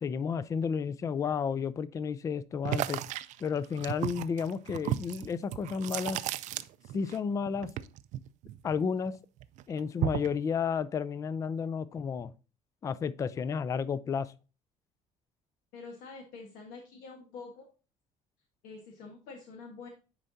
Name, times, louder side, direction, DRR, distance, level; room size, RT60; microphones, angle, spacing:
voice 1, 0.0-3.0 3.4-6.2 6.9-7.7 8.6-9.1 9.7-12.3 12.8-14.3, left 6 dB, 25° left, 0.3 m, -32 dB
sound 1, 2.6-7.2 7.4-9.1 9.4-10.4, right 13 dB, 60° right, 0.4 m, -34 dB
voice 2, 15.7-17.6 18.6-19.9, left 4 dB, 80° left, 1.4 m, -46 dB
9.9 x 4.4 x 2.7 m
cardioid pair, 145°, 14 cm